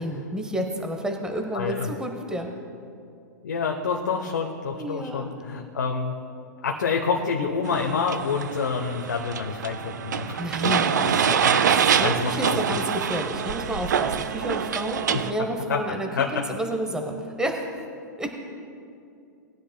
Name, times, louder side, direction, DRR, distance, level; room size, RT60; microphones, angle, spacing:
voice 1, 0.0-2.5 4.7-5.3 10.4-11.6 12.0-17.6 18.2-18.3, right 1 dB, 5° right, 3 dB, 1.0 m, -30 dB
voice 2, 1.5-1.9 3.4-6.2 6.6-10.4 11.4-12.8 15.1-15.2 15.7-15.8 16.1-16.4, left 5 dB, 75° left, 1 dB, 0.9 m, -27 dB
sound 1, 7.7-15.3, right 7 dB, 75° right, 0.5 m, -25 dB
19.0 x 10.0 x 2.3 m, 2.5 s
hypercardioid pair, 105°, 10 cm